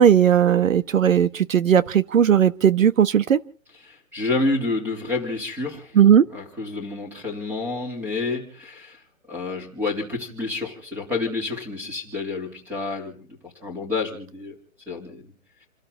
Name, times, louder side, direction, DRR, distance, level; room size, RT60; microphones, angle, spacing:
voice 1, 0.0-3.4 6.0-6.2, right 8 dB, 75° right, 14 dB, 1.4 m, -17 dB
voice 2, 3.7-5.9 6.3-9.0 9.3-14.6 14.9-15.2, left 3 dB, 5° right, 2 dB, 3.4 m, -29 dB
29.5 x 13.0 x 3.8 m, 0.42 s
hypercardioid pair, 170°, 40 cm